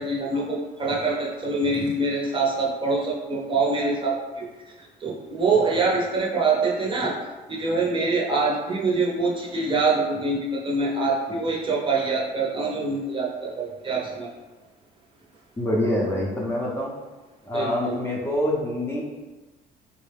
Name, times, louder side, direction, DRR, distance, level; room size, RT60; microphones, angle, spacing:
voice 1, 0.0-4.5 5.0-7.2 7.5-14.3 17.5-18.0, right 3 dB, 30° right, -3 dB, 0.7 m, -25 dB
voice 2, 15.6-16.9 17.4-19.0, left 1 dB, 15° left, -4 dB, 0.6 m, -25 dB
3.5 x 2.0 x 3.4 m, 1.2 s
cardioid pair, 110°, 17 cm